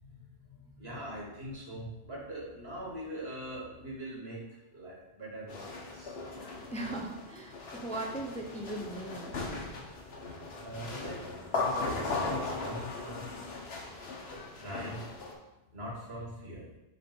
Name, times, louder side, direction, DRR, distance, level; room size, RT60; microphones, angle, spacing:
voice 1, 0.0-6.2 9.9-10.0 10.5-13.6 14.6-15.0 15.7-16.7, equal, 85° right, -4 dB, 2.1 m, -43 dB
sound 1, 5.5-15.3, left 3 dB, 85° left, 1.2 m, -38 dB
voice 2, 6.7-9.4, right 1 dB, 10° left, 1 dB, 0.5 m, -38 dB
6.8 x 3.3 x 5.2 m, 0.95 s
omnidirectional pair, 1.0 m